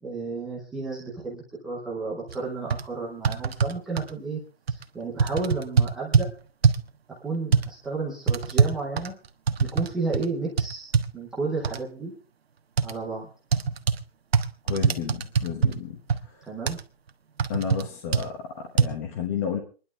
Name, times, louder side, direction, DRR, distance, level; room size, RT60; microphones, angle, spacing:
voice 1, 0.0-4.4 4.7-6.3 7.2-9.1 9.6-12.1 12.8-13.3 16.4-16.8, right 3 dB, ahead, -5 dB, 0.6 m, -32 dB
sound 1, 2.3-2.4 2.7-2.8 3.2-4.1 4.7-4.8 5.2-6.3 6.6-6.9 7.5-7.7 8.3-9.9 10.1-10.3 10.6-11.1 11.6-11.8 12.8-12.9 13.5-14.0 14.3-15.7 16.1-16.2 16.7-16.8 17.4-17.8 18.1-18.2 18.8-18.9, right 6 dB, 90° right, 1.4 m, -22 dB
voice 2, 14.6-16.4 17.5-19.6, left 7 dB, 15° left, 2 dB, 1.1 m, -32 dB
26.5 x 11.0 x 3.5 m, 0.37 s
hypercardioid pair, 175°, 30 cm